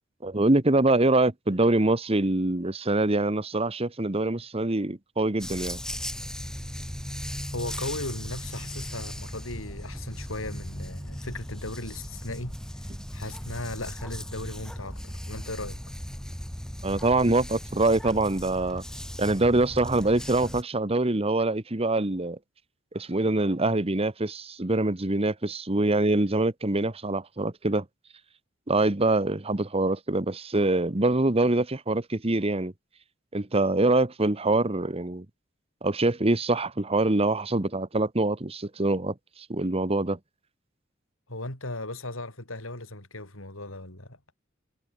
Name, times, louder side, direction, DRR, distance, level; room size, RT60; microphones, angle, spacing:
voice 1, 0.2-5.8 16.8-18.8 19.2-22.4 22.9-27.8 28.7-32.7 33.3-35.2 35.8-40.2, right 2 dB, 30° right, 1.2 m, -24 dB
Dog, 5.4-20.6, equal, 5° left, 6.2 m, -37 dB
voice 2, 7.5-15.8 41.3-44.2, left 2 dB, 85° left, 7.5 m, -37 dB
head